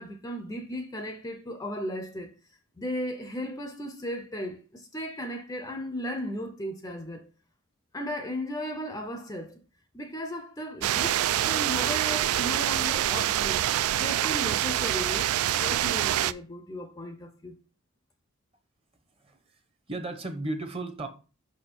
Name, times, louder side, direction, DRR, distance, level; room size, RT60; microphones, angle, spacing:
voice 1, 0.0-2.3 2.8-7.3 7.9-9.6 9.9-13.7 13.9-17.6, equal, 15° left, 0.5 m, -36 dB
sound 1, 10.8-16.3, right 12 dB, 90° right, 0.3 m, -26 dB
voice 2, 19.2-19.6 19.9-21.1, right 2 dB, 25° right, 0.8 m, -35 dB
5.8 x 4.3 x 4.3 m
head